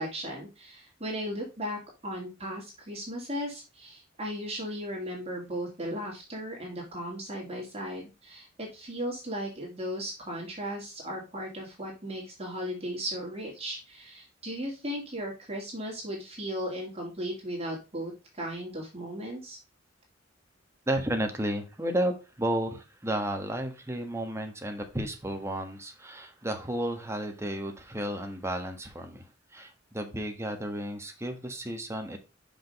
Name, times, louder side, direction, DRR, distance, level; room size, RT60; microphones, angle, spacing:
voice 1, 0.0-19.6, equal, 30° right, -1 dB, 2.2 m, -36 dB
voice 2, 20.9-32.2, right 1 dB, 15° right, 5 dB, 1.3 m, -32 dB
6.0 x 5.2 x 5.2 m, 0.29 s
head